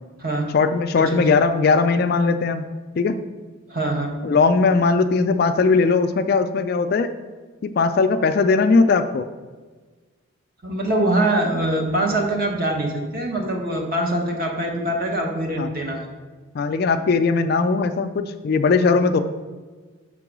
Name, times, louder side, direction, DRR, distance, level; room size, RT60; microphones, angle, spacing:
voice 1, 0.5-2.6 3.0-3.2 4.2-7.1 7.6-9.3 15.6-15.7 16.5-19.2, left 4 dB, 50° left, 9 dB, 0.3 m, -19 dB
voice 2, 3.7-4.1 10.6-16.1, right 1 dB, 45° right, 1 dB, 1.1 m, -23 dB
6.1 x 3.8 x 6.0 m, 1.3 s
head